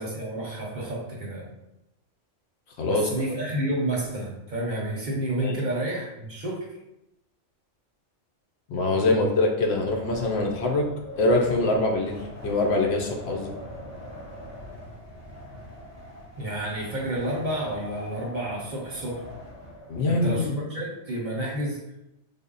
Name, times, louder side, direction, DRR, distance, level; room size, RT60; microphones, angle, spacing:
voice 1, 0.0-1.5 2.9-6.7 8.9-9.4 16.4-19.2 20.0-21.8, right 1 dB, 45° right, -3 dB, 0.7 m, -30 dB
voice 2, 2.8-3.1 5.4-5.6 8.7-10.9 11.2-13.5 19.9-20.5, left 2 dB, 70° left, 1 dB, 0.8 m, -24 dB
Wind, 9.6-20.0, equal, 35° left, 1.1 m, -42 dB
3.5 x 2.0 x 3.8 m, 0.87 s
omnidirectional pair, 1.2 m